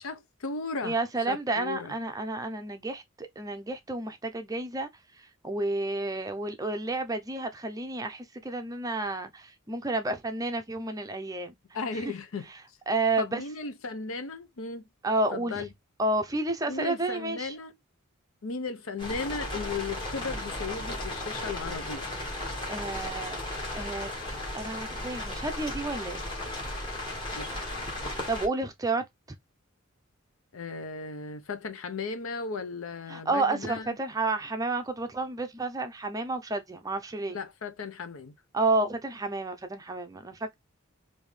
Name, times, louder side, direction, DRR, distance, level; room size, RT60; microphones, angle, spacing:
voice 1, 0.0-1.0 1.3-1.9 11.7-12.5 13.2-14.9 15.3-15.7 16.7-17.7 18.4-22.2 27.3-27.7 30.5-34.0 37.3-38.3, left 4 dB, 75° left, 0.6 m, -36 dB
voice 2, 0.8-4.9 5.2-11.5 11.9-12.1 12.5-12.6 12.9-13.4 15.0-15.6 16.0-17.6 22.7-24.1 24.5-26.2 28.3-29.0 33.1-37.4 38.5-40.5, right 2 dB, 15° right, 0.5 m, -31 dB
sound 1, 19.0-28.5, left 1 dB, 25° left, 1.4 m, -35 dB
3.5 x 2.6 x 3.2 m
head